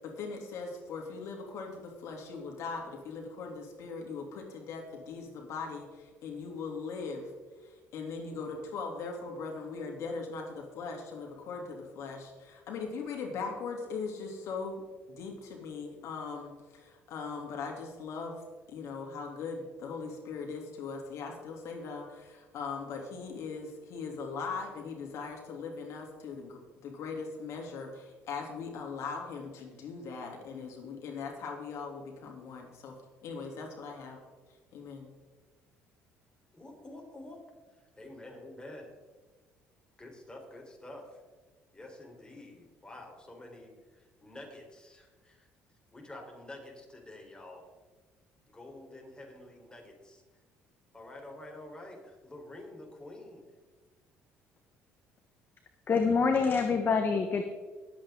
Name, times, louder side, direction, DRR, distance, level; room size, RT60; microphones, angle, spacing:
voice 1, 0.0-7.3 7.6-14.8 15.1-18.4 18.7-32.9 33.2-34.2 34.7-35.1, left 4 dB, 65° left, 0 dB, 3.1 m, -40 dB
voice 2, 36.5-37.4 38.0-38.9 40.0-41.2 41.7-45.5 45.9-47.6 48.5-50.2 50.9-53.4, left 1 dB, 15° left, 1 dB, 4.2 m, -48 dB
voice 3, 55.9-57.4, left 5 dB, 40° left, 6 dB, 1.3 m, -26 dB
23.0 x 8.3 x 3.9 m, 1.4 s
supercardioid pair, 75°, 5 cm